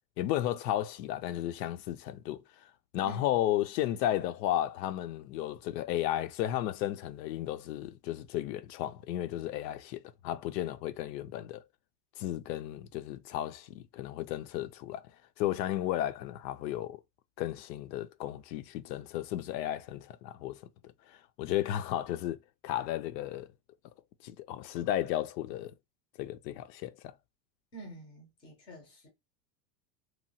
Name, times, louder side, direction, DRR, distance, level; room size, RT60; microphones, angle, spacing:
voice 1, 0.2-2.4 2.9-11.6 12.2-15.1 15.4-17.0 17.4-20.6 21.1-23.5 24.2-25.7 26.2-27.1, left 13 dB, 90° left, 0.6 m, -34 dB
voice 2, 27.7-29.1, right 2 dB, 10° left, 0.4 m, -48 dB
3.0 x 2.2 x 2.6 m
supercardioid pair, 165°, 48 cm